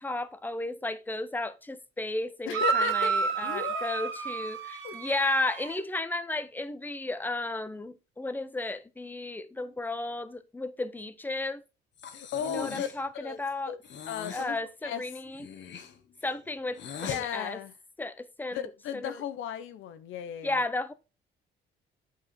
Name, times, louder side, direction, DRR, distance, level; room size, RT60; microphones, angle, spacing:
voice 1, 0.0-11.6 12.4-13.7 14.3-15.5 16.2-17.6 18.0-19.2 20.4-20.9, left 2 dB, 10° left, 0.8 m, -34 dB
voice 2, 2.5-4.1 4.8-5.0 12.1-12.9 13.1-13.4 13.7-13.8 14.1-14.6 14.8-15.0 17.0-17.7 18.5-20.6, left 9 dB, 85° left, 0.7 m, -36 dB
sound 1, 2.5-5.8, right 6 dB, 85° right, 1.4 m, -30 dB
Breathing, 12.0-13.0 13.8-14.5 15.3-17.2, left 7 dB, 65° left, 1.2 m, -41 dB
8.1 x 4.9 x 4.1 m
cardioid pair, 90°, 20 cm